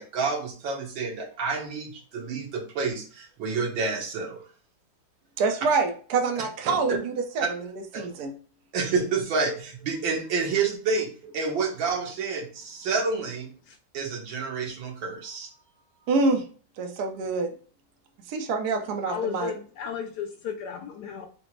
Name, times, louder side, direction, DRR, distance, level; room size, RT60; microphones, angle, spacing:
voice 1, 0.0-4.4 7.4-7.5 7.9-8.1 8.7-11.1 11.3-13.5 13.9-15.5, right 4 dB, 80° right, 0 dB, 1.8 m, -29 dB
voice 2, 5.4-8.3 16.1-16.4 16.8-17.5 18.3-19.5, right 4 dB, 65° right, 4 dB, 1.1 m, -26 dB
voice 3, 19.1-21.3, left 8 dB, 75° left, 5 dB, 1.0 m, -34 dB
5.1 x 2.0 x 4.4 m, 0.41 s
omnidirectional pair, 2.1 m